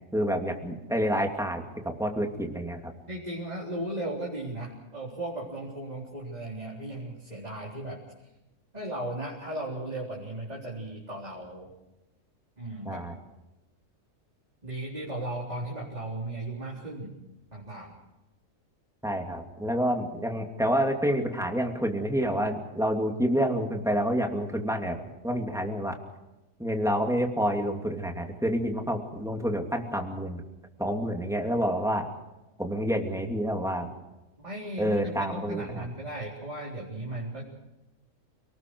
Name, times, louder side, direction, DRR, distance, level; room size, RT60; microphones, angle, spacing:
voice 1, 0.0-2.9 12.9-13.1 19.0-25.0 25.2-26.0 26.6-30.4 30.8-32.1 32.6-33.9 34.8-35.8, equal, ahead, 2 dB, 2.7 m, -28 dB
voice 2, 3.1-8.0 8.7-11.7 12.6-13.0 14.6-17.1 17.5-18.0 34.4-37.4, right 1 dB, 30° right, -4 dB, 4.1 m, -36 dB
29.0 x 19.5 x 4.8 m, 1.0 s
omnidirectional pair, 1.4 m